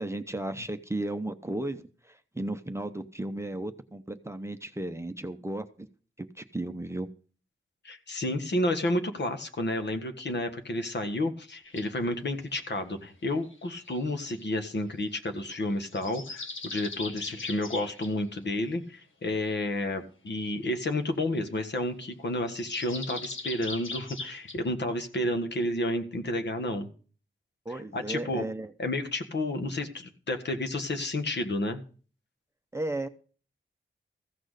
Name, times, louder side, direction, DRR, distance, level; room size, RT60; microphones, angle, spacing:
voice 1, 0.0-5.9 6.2-7.1 27.7-28.7 32.7-33.1, right 1 dB, 15° right, 7 dB, 0.7 m, -35 dB
voice 2, 7.8-26.9 27.7-28.4 28.8-31.8, left 1 dB, 60° left, 7 dB, 1.6 m, -31 dB
sound 1, 11.6-11.9 13.4-14.7 15.8-18.1 22.5-24.6, left 3 dB, 75° left, 1.4 m, -40 dB
15.0 x 6.1 x 6.6 m, 0.39 s
wide cardioid pair, 140°, 20 cm